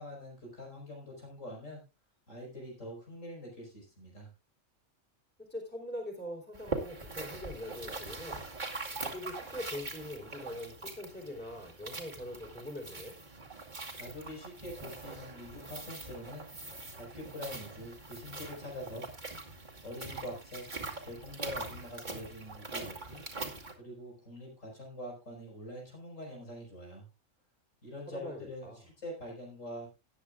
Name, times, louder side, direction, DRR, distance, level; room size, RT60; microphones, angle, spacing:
voice 1, 0.0-1.8 2.3-4.3 13.9-16.5 17.0-19.1 19.8-20.7 21.1-23.2 23.8-27.1 27.8-29.9, left 1 dB, 70° left, 0 dB, 5.4 m, -44 dB
voice 2, 5.4-8.4 8.9-13.2 28.1-28.9, left 1 dB, 5° left, 2 dB, 3.6 m, -42 dB
sound 1, 6.5-23.7, right 3 dB, 35° right, 2.5 m, -42 dB
18.5 x 9.7 x 2.4 m, 0.26 s
omnidirectional pair, 1.4 m